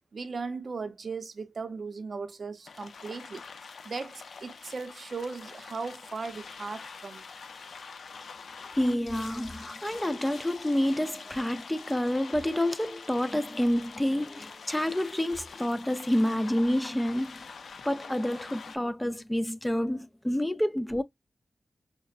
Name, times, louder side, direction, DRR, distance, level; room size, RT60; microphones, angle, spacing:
voice 1, 0.1-3.4 3.8-7.3, right 4 dB, 55° right, 0.6 m, -37 dB
sound 1, 2.7-18.8, left 5 dB, 75° left, 0.5 m, -45 dB
voice 2, 8.8-17.5 17.9-21.0, left 1 dB, 10° left, 0.4 m, -28 dB
5.1 x 2.1 x 2.4 m
wide cardioid pair, 95°, 0 cm